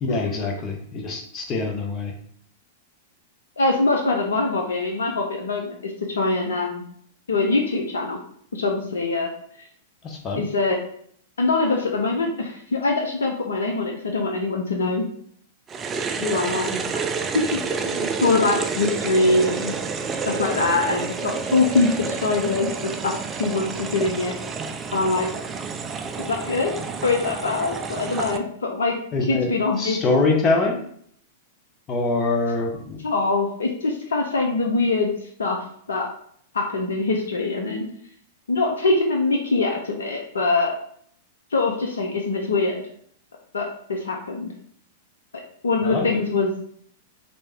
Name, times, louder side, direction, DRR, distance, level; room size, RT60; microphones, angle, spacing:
voice 1, 0.0-2.1 10.0-10.4 29.1-29.5 29.8-30.8 31.9-33.0 45.8-46.1, left 3 dB, 30° left, 1 dB, 0.7 m, -24 dB
voice 2, 3.6-6.8 7.3-8.2 8.5-9.3 10.4-10.8 11.4-15.1 16.2-16.8 17.3-19.7 20.3-22.8 23.0-24.4 24.9-25.3 26.3-26.7 27.0-28.9 29.2-30.0 33.0-35.1 35.4-35.6 35.9-36.1 36.5-37.9 38.5-40.7 41.5-42.8 43.5-44.5 45.6-46.5, left 3 dB, 75° left, 1 dB, 0.5 m, -23 dB
sound 1, 15.7-28.4, right 5 dB, 20° right, 0.3 m, -29 dB
3.2 x 2.6 x 3.3 m, 0.63 s
figure-of-eight pair, 100°, 0 cm